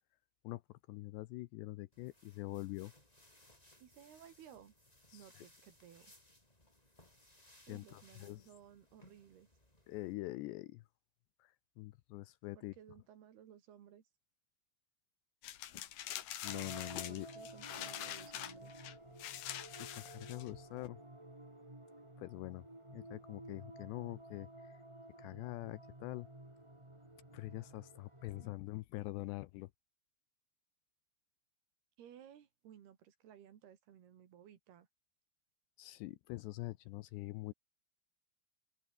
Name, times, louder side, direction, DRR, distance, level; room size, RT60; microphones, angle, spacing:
voice 1, 0.9-2.9 5.1-5.5 7.7-8.5 9.9-10.8 11.4-12.7 16.4-17.3 19.8-21.0 22.2-22.6 22.9-24.8 25.2-26.3 27.3-29.7 35.8-37.5, left 19 dB, 80° left, 2.7 m, -44 dB
sound 1, 1.9-10.1, left 1 dB, 10° left, 4.9 m, -65 dB
voice 2, 3.8-4.8 5.1-6.1 7.7-9.5 12.6-14.0 17.1-18.7 32.0-34.9, right 10 dB, 60° right, 3.8 m, -58 dB
sound 2, 15.4-20.9, left 12 dB, 65° left, 3.3 m, -45 dB
sound 3, 16.5-28.5, right 1 dB, 10° right, 2.6 m, -53 dB
omnidirectional pair, 5.4 m